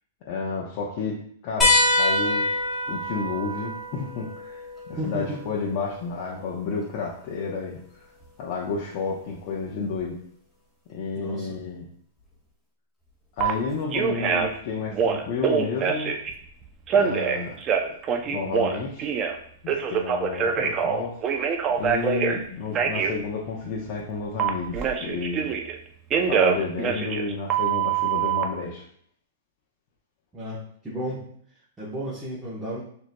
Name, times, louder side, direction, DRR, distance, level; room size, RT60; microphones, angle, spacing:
voice 1, 0.3-1.2 1.4-2.5 2.9-8.1 8.4-10.2 10.9-11.9 13.4-16.2 16.9-17.6 18.2-19.1 19.6-21.5 21.8-25.5 26.3-28.8, left 5 dB, 50° left, -3 dB, 0.8 m, -31 dB
sound 1, 1.6-6.7 8.2-8.3 10.0-10.1, left 1 dB, 10° left, 1.2 m, -26 dB
voice 2, 5.0-5.4 11.2-11.6 30.3-31.3 31.8-32.8, right 1 dB, 10° right, -9 dB, 1.1 m, -33 dB
Telephone, 13.4-13.5 13.9-14.6 14.9-16.3 16.9-19.4 19.7-22.4 22.7-23.1 24.4-25.8 26.1-28.4, right 7 dB, 30° right, 0.5 m, -24 dB
6.2 x 2.8 x 2.2 m, 0.63 s
hypercardioid pair, 135°, 0 cm